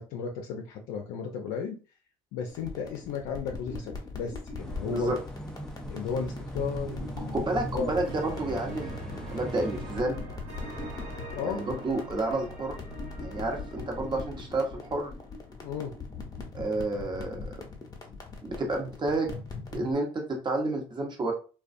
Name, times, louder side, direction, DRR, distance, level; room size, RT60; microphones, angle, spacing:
voice 1, 0.0-1.8 2.3-5.2 5.9-7.4 7.7-7.9 11.3-11.6 15.6-15.9, left 6 dB, 75° left, 2 dB, 0.4 m, -34 dB
sound 1, 2.5-19.9, left 3 dB, 25° left, 0.8 m, -41 dB
sound 2, 4.6-10.0, equal, 5° left, 0.4 m, -40 dB
voice 2, 7.2-10.2 11.4-12.8 13.2-15.1 16.5-17.4 18.4-19.3 19.7-21.3, right 2 dB, 30° right, 2 dB, 0.9 m, -30 dB
sound 3, 8.0-15.7, right 2 dB, 85° right, 1.1 m, -44 dB
2.4 x 2.2 x 2.5 m, 0.35 s
supercardioid pair, 75°, 14 cm